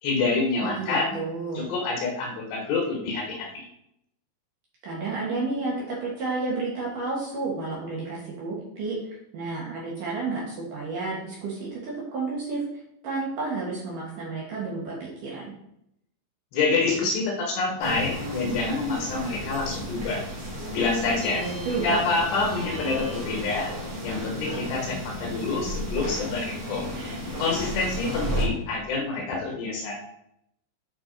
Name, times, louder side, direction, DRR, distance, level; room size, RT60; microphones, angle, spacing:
voice 1, 0.0-1.2 1.5-3.7 16.5-20.2 20.7-21.4 21.8-23.7 24.0-26.9 27.4-30.0, left 3 dB, 70° left, 0 dB, 3.3 m, -27 dB
voice 2, 0.6-1.7 4.8-9.0 9.3-12.6 13.0-15.5 21.3-22.0, right 3 dB, 60° right, -4 dB, 2.4 m, -31 dB
sound 1, 17.8-28.5, equal, 80° right, 0.6 m, -33 dB
8.7 x 5.8 x 3.9 m, 0.77 s
omnidirectional pair, 5.5 m